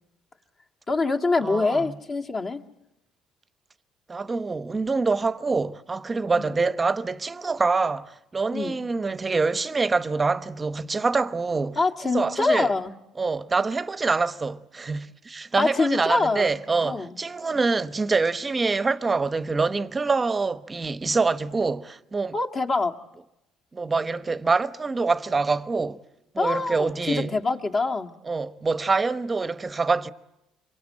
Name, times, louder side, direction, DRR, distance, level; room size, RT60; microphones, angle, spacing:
voice 1, 0.9-2.6 6.4-6.7 8.5-8.8 11.8-13.0 15.6-16.5 16.8-17.2 22.3-22.9 26.4-28.2, left 3 dB, 35° left, 1.9 m, -25 dB
voice 2, 1.4-1.9 4.1-11.8 12.1-12.7 13.2-22.3 23.7-26.0 26.3-27.3 28.3-30.1, right 4 dB, 20° right, 0.9 m, -25 dB
27.0 x 23.5 x 8.6 m
cardioid pair, 105°, 0 cm